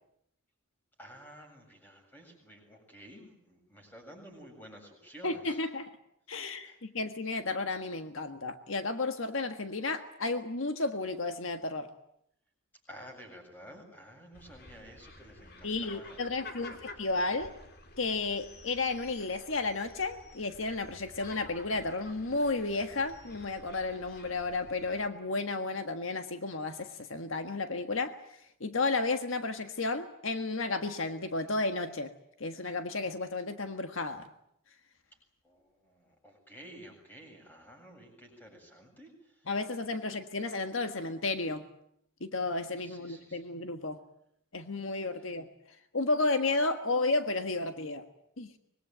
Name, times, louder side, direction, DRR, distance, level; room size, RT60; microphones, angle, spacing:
voice 1, 1.0-5.6 6.6-6.7 12.9-16.2 16.6-16.8 35.4-35.6 35.8-39.1 42.8-43.4, equal, 10° left, 2 dB, 7.5 m, -51 dB
voice 2, 5.2-5.9 6.3-11.9 15.6-17.5 18.0-28.2 28.6-32.1 32.4-34.3 39.4-41.6 42.2-44.0 44.5-45.5 45.9-48.0 48.4-48.5, left 3 dB, 70° left, 7 dB, 1.6 m, -32 dB
sound 1, 14.3-25.1, left 2 dB, 50° left, 2.7 m, -51 dB
25.0 x 22.0 x 9.1 m, 0.75 s
head